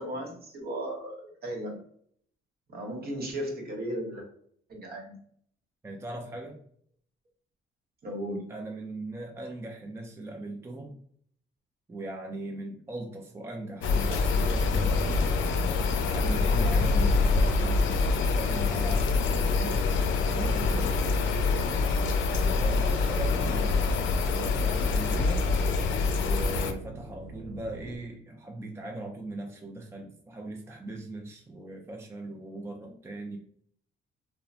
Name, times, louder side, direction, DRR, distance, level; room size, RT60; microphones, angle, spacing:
voice 1, 0.0-1.8 2.7-4.2 4.7-5.2 8.0-8.5 21.2-21.4 23.2-23.5, right 1 dB, 50° right, 1 dB, 1.0 m, -36 dB
voice 2, 5.8-6.6 8.5-11.0 11.9-15.4 16.1-19.9 20.2-21.0 22.3-23.9 24.3-25.5 26.2-33.4, right 2 dB, 15° right, 2 dB, 0.4 m, -39 dB
sound 1, 13.8-26.7, left 4 dB, 75° left, 0.4 m, -25 dB
sound 2, 21.4-28.0, right 2 dB, 40° left, 0.8 m, -45 dB
2.9 x 2.0 x 2.4 m, 0.63 s
cardioid pair, 90°, 20 cm